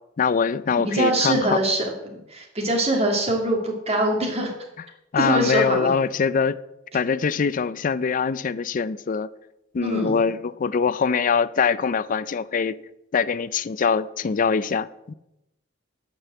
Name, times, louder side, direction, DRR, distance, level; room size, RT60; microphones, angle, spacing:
voice 1, 0.2-1.6 5.1-6.6 6.9-9.3 9.7-12.8 13.1-15.1, left 5 dB, 40° left, 0.4 m, -23 dB
voice 2, 0.9-1.9 2.3-4.5 5.2-5.9 9.8-10.3, right 1 dB, 30° right, 2.6 m, -23 dB
11.5 x 5.2 x 8.2 m
head